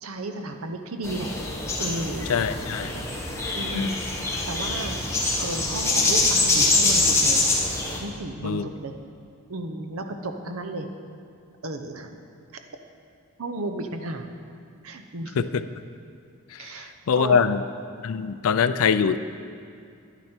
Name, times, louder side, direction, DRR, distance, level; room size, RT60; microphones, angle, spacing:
voice 1, 0.0-1.4 1.8-3.0 3.5-4.0 4.5-7.7 8.0-9.0 9.5-10.9 11.6-12.1 13.4-14.3 14.8-15.4 16.6-17.4, right 2 dB, 80° right, 5 dB, 0.8 m, -33 dB
sound 1, 1.0-8.0, left 2 dB, 15° left, 1.1 m, -24 dB
voice 2, 2.3-3.0 3.7-3.9 8.4-8.7 15.4-15.6 16.5-16.7 17.1-17.6 18.0-19.2, left 6 dB, 80° left, 13 dB, 0.4 m, -23 dB
10.5 x 9.9 x 4.4 m, 2.5 s
head